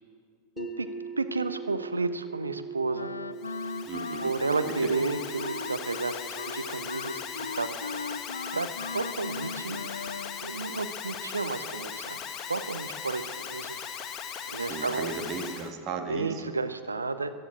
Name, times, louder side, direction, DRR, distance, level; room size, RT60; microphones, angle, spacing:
sound 1, 0.6-12.5, right 4 dB, 10° left, 2.0 m, -44 dB
voice 1, 0.6-0.9 1.2-3.1 4.2-7.8 8.5-9.8 10.4-12.2 12.5-13.8 14.5-15.1 16.1-17.3, right 3 dB, 75° right, 10 dB, 0.8 m, -32 dB
Wind instrument woodwind instrument, 2.9-10.5, left 4 dB, 75° left, 0.4 m, -38 dB
Alarm, 3.4-15.7, left 8 dB, 30° left, 1.1 m, -39 dB
voice 2, 3.8-4.3 4.6-5.0 14.6-16.4, right 5 dB, 35° right, 5 dB, 1.8 m, -36 dB
15.5 x 10.5 x 8.8 m, 2.1 s
figure-of-eight pair, 90°, 0 cm